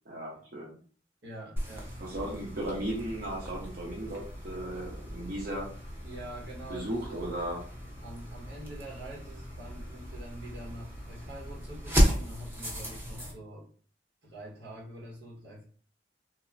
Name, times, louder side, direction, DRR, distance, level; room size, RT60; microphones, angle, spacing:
voice 1, 0.1-0.8 2.0-5.7 6.7-7.6, right 1 dB, 55° right, -4 dB, 0.7 m, -36 dB
voice 2, 1.2-1.9 6.0-7.2 8.0-13.7 14.2-15.7, right 1 dB, 85° right, -3 dB, 1.1 m, -45 dB
sound 1, 1.6-13.3, equal, 15° right, 0.7 m, -34 dB
3.0 x 2.0 x 2.4 m, 0.42 s
head